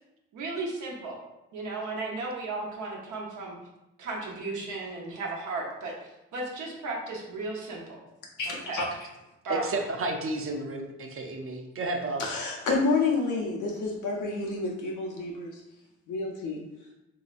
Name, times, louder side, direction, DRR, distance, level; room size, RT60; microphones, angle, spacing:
voice 1, 0.3-1.2 1.5-3.6 4.0-8.0 8.5-8.8 9.4-9.8, right 3 dB, 80° right, -2 dB, 0.9 m, -35 dB
voice 2, 8.4-8.9 12.2-15.6 16.1-16.6, left 3 dB, 85° left, -1 dB, 0.8 m, -29 dB
voice 3, 9.5-12.2, right 2 dB, 45° right, 3 dB, 0.6 m, -32 dB
3.1 x 2.7 x 2.4 m, 0.96 s
cardioid pair, 65°, 30 cm